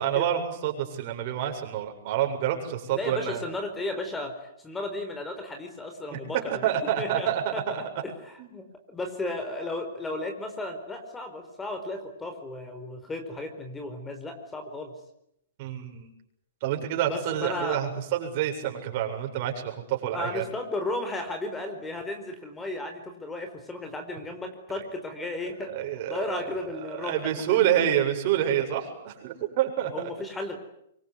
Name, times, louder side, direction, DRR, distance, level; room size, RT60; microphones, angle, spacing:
voice 1, 0.0-3.4 6.1-7.8 8.4-8.5 15.6-16.1 16.6-20.5 25.7-26.3 26.9-30.1, right 10 dB, 45° right, 3 dB, 7.4 m, -28 dB
voice 2, 2.9-6.7 7.0-14.9 17.1-17.8 20.1-25.7 26.1-27.9 29.9-30.6, left 2 dB, 10° left, 6 dB, 4.7 m, -34 dB
25.5 x 23.5 x 9.8 m, 0.77 s
hypercardioid pair, 135°, 0 cm